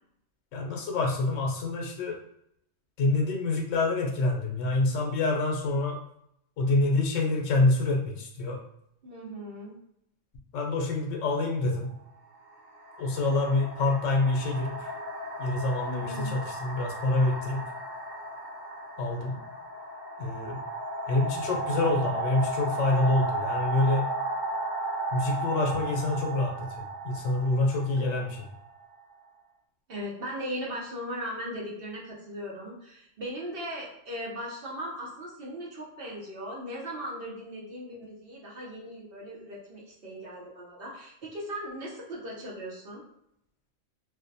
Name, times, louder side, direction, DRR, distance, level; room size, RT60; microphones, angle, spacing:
voice 1, 0.5-2.2 3.0-6.0 6.6-8.6 10.5-11.9 13.0-14.9 15.4-17.6 19.0-19.4 20.2-20.6 21.1-24.1 25.1-26.7 27.0-28.4, left 2 dB, 85° left, -1 dB, 0.9 m, -26 dB
voice 2, 9.0-9.8 15.8-16.4 28.0-28.2 29.9-43.0, equal, 55° right, -4 dB, 0.8 m, -38 dB
sound 1, 11.5-11.6 12.5-29.1, right 2 dB, 25° left, 1.0 m, -35 dB
2.5 x 2.1 x 2.6 m, 0.76 s
omnidirectional pair, 1.3 m